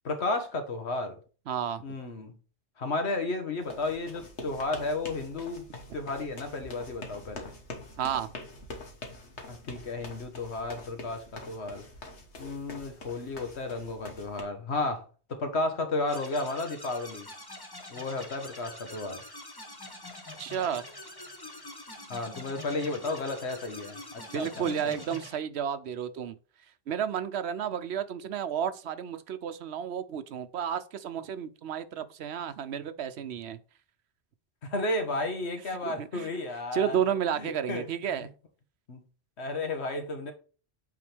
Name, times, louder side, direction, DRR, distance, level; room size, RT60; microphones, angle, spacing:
voice 1, 0.0-1.2 1.8-2.4 2.8-5.6 5.9-7.5 9.5-11.9 12.4-17.3 17.9-19.2 22.1-25.0 34.6-37.9 38.2-38.3 38.9-39.0 39.4-40.3, left 2 dB, 75° left, 1.5 m, -33 dB
voice 2, 1.5-1.8 8.0-8.3 20.4-20.8 24.3-26.3 26.9-33.6 35.8-36.3 36.7-38.3, right 8 dB, 75° right, 0.9 m, -32 dB
sound 1, 3.6-14.4, left 2 dB, 90° left, 1.7 m, -45 dB
sound 2, 16.1-25.3, left 1 dB, 20° left, 1.2 m, -45 dB
8.5 x 3.8 x 3.4 m
omnidirectional pair, 1.1 m